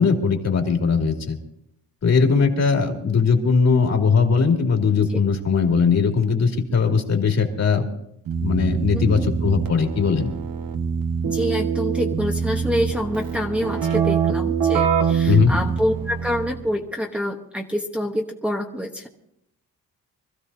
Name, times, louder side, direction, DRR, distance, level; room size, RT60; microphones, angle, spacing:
voice 1, 0.0-1.4 2.0-7.8 8.4-10.3 15.2-15.5, left 5 dB, 45° left, 2 dB, 2.6 m, -19 dB
Keyboard (musical), 8.3-16.7, right 7 dB, 65° right, 1.7 m, -24 dB
voice 2, 8.9-9.3 11.2-19.1, equal, 5° right, -1 dB, 1.2 m, -26 dB
25.0 x 15.0 x 2.8 m, 0.78 s
cardioid pair, 145°, 36 cm